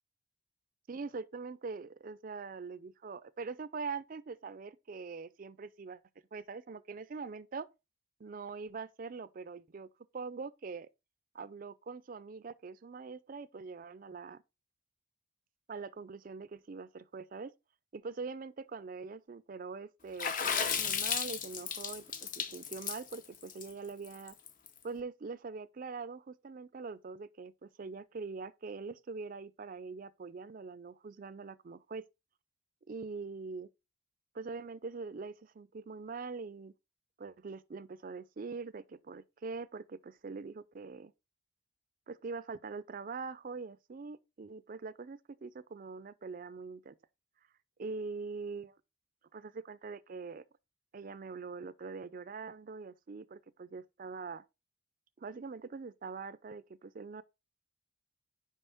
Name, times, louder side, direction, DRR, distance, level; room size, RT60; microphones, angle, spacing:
voice 1, 0.9-6.0 6.3-7.7 8.2-9.9 10.1-10.9 11.3-14.4 15.7-17.5 17.9-24.4 24.8-32.0 32.9-33.7 34.3-36.7 37.2-41.1 42.1-47.0 47.8-48.8 49.3-50.4 50.9-54.4 55.2-57.2, right 4 dB, 45° right, 0.4 m, -43 dB
Water / Splash splatter, 20.2-24.7, left 7 dB, 40° left, 0.7 m, -34 dB
5.5 x 5.0 x 3.9 m
head